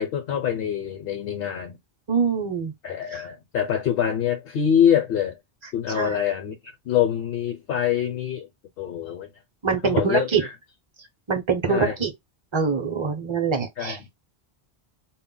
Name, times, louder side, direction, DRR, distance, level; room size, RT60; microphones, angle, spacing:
voice 1, 0.0-1.8 2.8-5.4 5.7-6.6 6.9-8.5 8.8-9.3 9.8-10.5 11.7-11.9 13.8-14.1, left 9 dB, 65° left, 0.7 m, -25 dB
voice 2, 2.1-2.7 3.1-3.3 5.9-6.2 9.6-10.4 11.3-12.1 12.5-14.0, right 5 dB, 35° right, 0.6 m, -24 dB
2.2 x 2.0 x 3.6 m
omnidirectional pair, 1.1 m